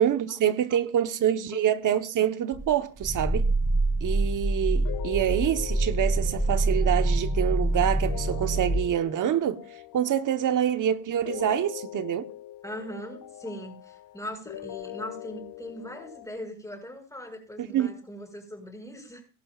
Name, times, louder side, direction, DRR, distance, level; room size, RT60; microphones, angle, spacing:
voice 1, 0.0-3.5 4.0-9.6 9.9-12.3 17.6-17.9, right 10 dB, 50° right, 1.2 m, -26 dB
Growling, 2.5-8.9, right 2 dB, 10° right, 3.3 m, -26 dB
sound 1, 4.8-16.3, left 13 dB, 60° left, 2.1 m, -42 dB
voice 2, 12.6-19.2, equal, 10° left, 6.3 m, -40 dB
23.0 x 11.0 x 2.5 m
hypercardioid pair, 70°, 39 cm